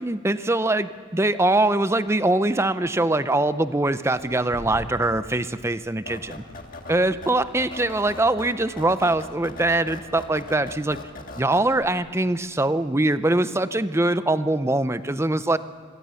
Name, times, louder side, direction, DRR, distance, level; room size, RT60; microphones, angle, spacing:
voice 1, 0.0-6.4 6.9-11.0 11.4-15.6, right 2 dB, 15° right, 13 dB, 0.6 m, -23 dB
sound 1, 4.0-11.4, equal, 80° right, 7.0 m, -47 dB
sound 2, 6.1-11.9, left 2 dB, 45° left, 1.7 m, -40 dB
24.5 x 16.5 x 7.0 m, 2.1 s
head